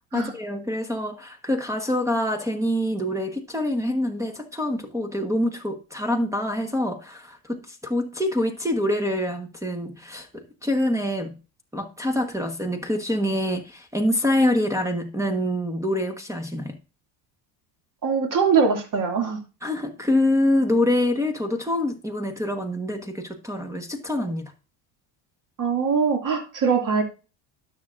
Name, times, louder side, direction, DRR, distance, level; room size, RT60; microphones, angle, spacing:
voice 1, 0.1-10.3 10.6-11.4 11.7-16.7 19.6-24.5, left 1 dB, 5° right, 6 dB, 1.1 m, -25 dB
voice 2, 18.0-19.4 25.6-27.0, right 5 dB, 40° right, 3 dB, 2.2 m, -22 dB
12.5 x 6.5 x 2.4 m, 0.32 s
supercardioid pair, 100°, 48 cm